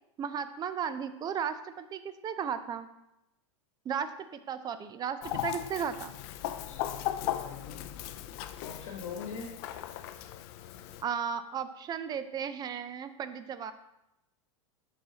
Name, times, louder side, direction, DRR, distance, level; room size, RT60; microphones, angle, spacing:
voice 1, 0.2-2.9 3.8-4.1 4.5-6.1 11.0-13.7, right 7 dB, 25° right, 11 dB, 0.5 m, -35 dB
Chicken rooster, 5.2-11.0, left 12 dB, 55° left, 0.4 m, -37 dB
voice 2, 6.7-8.2 8.6-9.6, left 5 dB, 75° left, 1 dB, 1.1 m, -43 dB
11.5 x 4.0 x 2.9 m, 0.88 s
hypercardioid pair, 110°, 16 cm